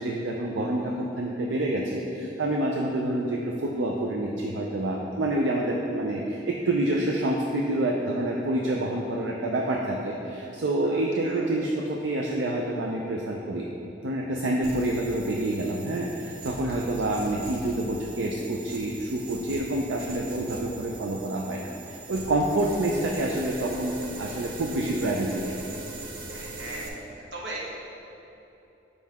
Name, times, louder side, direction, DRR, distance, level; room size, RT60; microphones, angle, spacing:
voice 1, 0.0-13.7 14.0-25.6, right 1 dB, 90° right, -1 dB, 0.5 m, -27 dB
voice 2, 10.8-11.5 16.6-16.8 26.3-27.0 27.3-27.8, right 1 dB, 75° right, -4 dB, 1.2 m, -39 dB
sound 1, 14.6-26.9, right 2 dB, 50° right, 0.7 m, -40 dB
7.5 x 5.2 x 3.5 m, 2.9 s
head